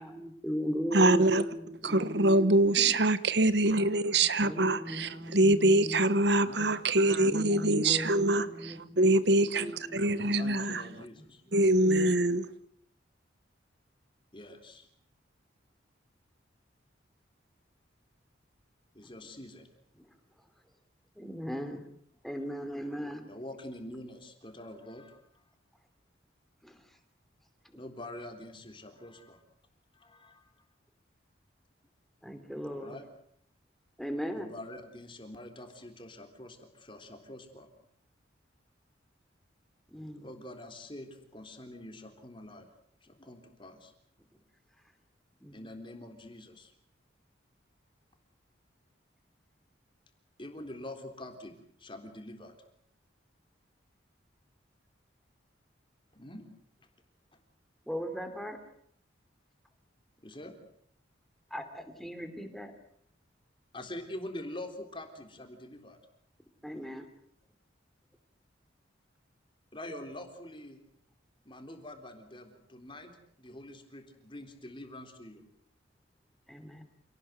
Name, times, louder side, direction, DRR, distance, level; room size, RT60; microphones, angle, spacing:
voice 1, 0.0-2.9 4.4-6.1 7.2-10.3 11.1-12.1 19.0-19.1 20.0-20.1 21.2-21.8 22.2-23.3 26.6-26.8 32.2-32.9 34.0-34.5 39.9-40.3 45.4-45.6 57.9-58.6 61.5-62.7 66.6-67.1 76.5-76.8, equal, ahead, 3.2 m, -38 dB
voice 2, 0.9-1.4 1.8-10.8 11.5-12.4, right 2 dB, 60° right, 1.1 m, -24 dB
voice 3, 10.4-11.4 14.3-14.9 18.9-19.7 23.3-25.2 27.7-29.4 29.9-30.4 32.8-33.0 34.3-37.7 40.2-42.7 43.0-43.9 45.5-46.7 50.4-52.5 56.1-56.4 60.2-60.5 63.7-66.0 69.7-70.8 71.4-73.1 73.4-75.4, left 1 dB, 25° left, 3.7 m, -45 dB
28.0 x 18.5 x 8.1 m
head